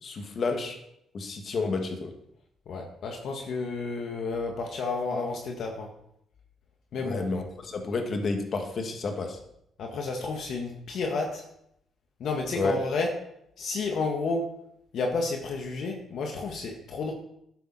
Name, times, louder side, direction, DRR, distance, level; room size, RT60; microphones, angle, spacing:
voice 1, 0.0-0.8 1.1-2.1 7.0-9.4 12.5-12.8, left 3 dB, 50° left, 4 dB, 2.0 m, -30 dB
voice 2, 2.7-5.9 6.9-7.3 9.8-11.4 12.2-13.1 13.6-14.5 14.9-17.1, left 3 dB, 65° left, 2 dB, 1.7 m, -31 dB
12.0 x 9.1 x 4.3 m, 0.76 s
cardioid pair, 90°, 0 cm